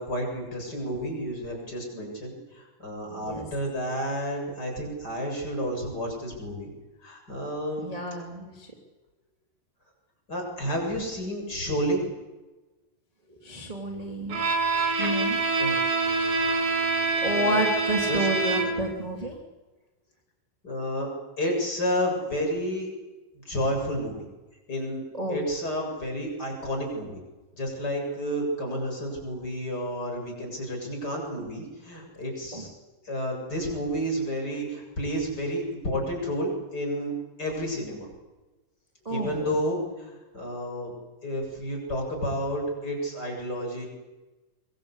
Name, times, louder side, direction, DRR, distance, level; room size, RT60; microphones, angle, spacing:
voice 1, 0.0-6.7 7.0-8.0 10.3-12.0 15.6-15.7 17.2-17.6 18.1-18.3 18.6-18.7 20.6-21.1 21.4-22.9 23.4-24.3 24.7-25.0 25.3-27.2 27.5-32.7 33.0-38.1 39.1-41.0 41.2-43.9, equal, 30° left, 1 dB, 8.1 m, -31 dB
voice 2, 3.1-3.4 7.8-8.7 13.3-14.4 15.0-15.4 17.2-19.4 25.1-25.4 32.5-32.6 35.9-36.0 39.0-39.3, right 1 dB, 10° right, -1 dB, 2.8 m, -30 dB
Bowed string instrument, 14.3-19.0, right 3 dB, 65° right, 4.8 m, -25 dB
25.5 x 23.5 x 8.4 m, 1.2 s
omnidirectional pair, 3.8 m